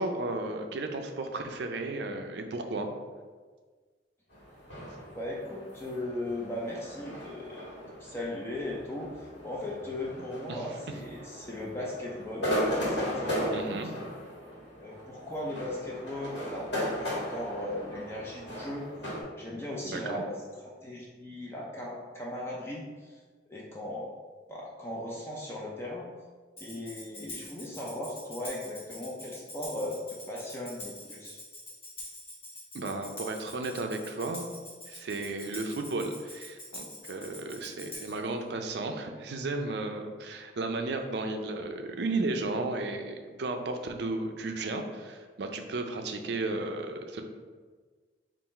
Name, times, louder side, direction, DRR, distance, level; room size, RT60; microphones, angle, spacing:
voice 1, 0.0-2.9 10.5-10.6 13.5-13.9 19.8-20.2 32.7-34.4 34.9-47.2, right 2 dB, 70° right, 5 dB, 0.4 m, -34 dB
sound 1, 4.3-19.2, equal, 75° left, 1.4 m, -37 dB
voice 2, 5.1-7.6 8.0-12.5 12.8-13.9 14.8-18.9 19.3-20.4 20.6-23.2 23.5-24.1 24.5-26.1 26.6-31.4, left 1 dB, 15° left, -4 dB, 0.5 m, -37 dB
Tambourine, 26.6-38.3, left 1 dB, 30° left, 1.0 m, -45 dB
3.8 x 2.5 x 4.1 m, 1.5 s
head